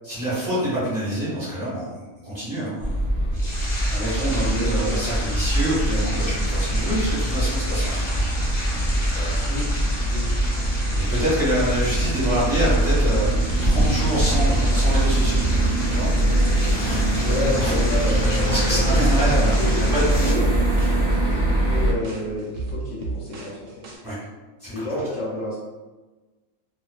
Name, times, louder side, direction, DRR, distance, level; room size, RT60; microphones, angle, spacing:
voice 1, 0.0-3.0 3.9-8.1 9.1-9.5 11.1-15.4 15.9-16.1 16.8-17.0 17.6-20.0 24.0-24.2 24.6-25.0, right 1 dB, 15° right, -10 dB, 1.1 m, -26 dB
sound 1, 2.8-21.9, right 1 dB, 40° right, 0.5 m, -22 dB
sound 2, 3.3-20.3, left 1 dB, 40° left, 0.5 m, -34 dB
voice 2, 4.3-5.0 9.4-9.7 10.1-10.3 17.2-19.0 19.6-20.4 21.6-23.8 24.7-25.6, left 1 dB, 65° left, -6 dB, 0.9 m, -29 dB
sound 3, 19.2-24.0, right 3 dB, 70° right, 0.8 m, -33 dB
2.4 x 2.4 x 2.3 m, 1.2 s
omnidirectional pair, 1.5 m